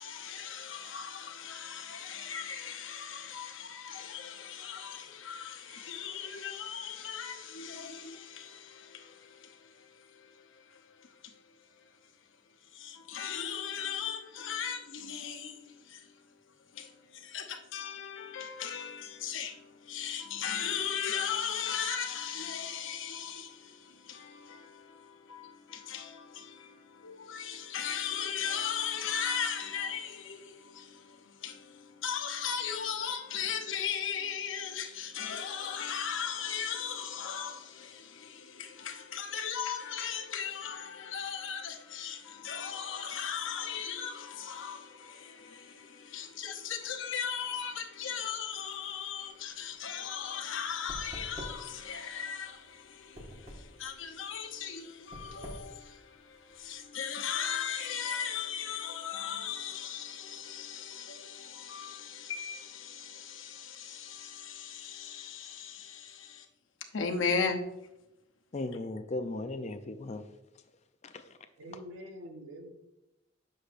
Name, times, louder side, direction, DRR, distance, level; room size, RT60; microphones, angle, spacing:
voice 1, 0.0-12.0 12.6-16.2 16.7-66.5 66.9-67.6, left 7 dB, 75° left, 0.8 m, -38 dB
sound 1, 49.3-56.8, equal, 35° right, 1.5 m, -48 dB
voice 2, 68.5-70.3 71.0-71.4, left 2 dB, 35° left, 0.5 m, -37 dB
voice 3, 71.6-72.7, equal, 85° right, 1.2 m, -45 dB
8.3 x 6.4 x 2.6 m
head